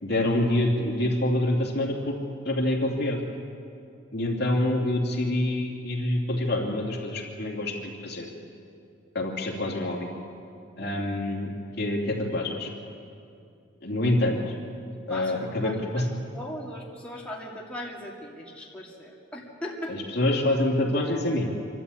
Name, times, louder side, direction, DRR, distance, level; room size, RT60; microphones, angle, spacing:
voice 1, 0.0-2.2 2.4-3.2 4.1-8.3 9.1-10.1 10.8-11.5 11.8-12.7 13.8-14.4 15.1-16.0 19.9-21.5, left 1 dB, 55° left, 0 dB, 2.7 m, -26 dB
voice 2, 14.9-15.3 15.6-15.8 16.3-20.0, left 1 dB, 5° left, -4 dB, 2.3 m, -38 dB
25.0 x 12.5 x 8.6 m, 2.5 s
head